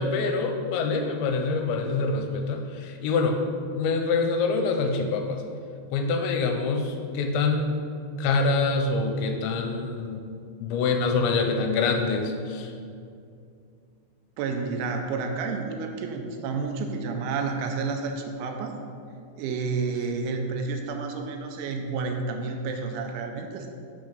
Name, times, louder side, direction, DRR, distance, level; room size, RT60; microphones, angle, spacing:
voice 1, 0.0-3.4 3.8-5.4 5.9-7.8 8.2-10.2 10.6-12.7, left 4 dB, 85° left, 4 dB, 2.8 m, -25 dB
voice 2, 14.4-18.8 19.4-23.7, right 4 dB, 90° right, 4 dB, 3.0 m, -30 dB
7.7 x 3.6 x 6.4 m, 2.4 s
omnidirectional pair, 5.4 m